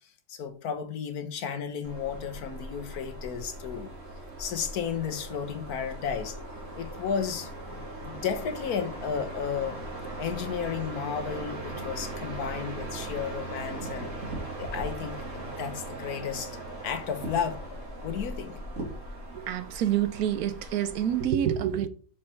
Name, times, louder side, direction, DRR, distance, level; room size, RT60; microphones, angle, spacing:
voice 1, 0.3-3.9 4.4-6.4 6.7-9.8 10.2-14.1 14.6-16.6 16.8-17.6 18.0-18.6, left 7 dB, 90° left, 1.5 m, -33 dB
sound 1, 1.8-21.2, right 1 dB, 60° right, 2.5 m, -39 dB
voice 2, 19.3-21.9, right 10 dB, 90° right, 1.2 m, -27 dB
6.4 x 4.5 x 4.2 m
omnidirectional pair, 1.5 m